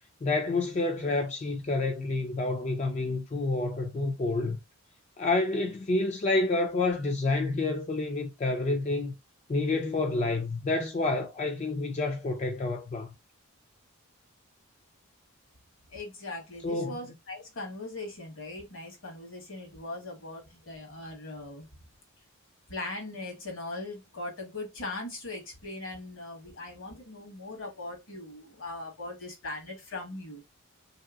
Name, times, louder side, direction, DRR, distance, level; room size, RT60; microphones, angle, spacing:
voice 1, 0.2-4.6 5.2-9.1 9.5-13.1 16.6-17.0, left 2 dB, 30° left, 0.4 m, -28 dB
voice 2, 15.9-21.7 22.7-30.4, left 2 dB, 65° left, 1.3 m, -40 dB
3.2 x 2.8 x 2.3 m
head